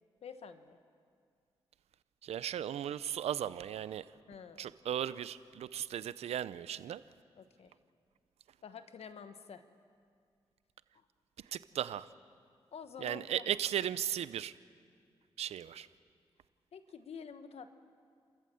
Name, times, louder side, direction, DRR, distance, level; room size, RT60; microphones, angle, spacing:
voice 1, 0.2-0.8 4.3-4.7 7.4-7.7 8.6-9.6 12.7-13.5 16.7-17.7, left 6 dB, 80° left, 10 dB, 1.3 m, -48 dB
voice 2, 2.2-4.1 4.6-7.0 11.4-12.1 13.0-14.6 15.4-15.9, right 10 dB, 90° right, 16 dB, 0.6 m, -36 dB
30.0 x 14.0 x 7.8 m, 2.2 s
cardioid pair, 60°, 10 cm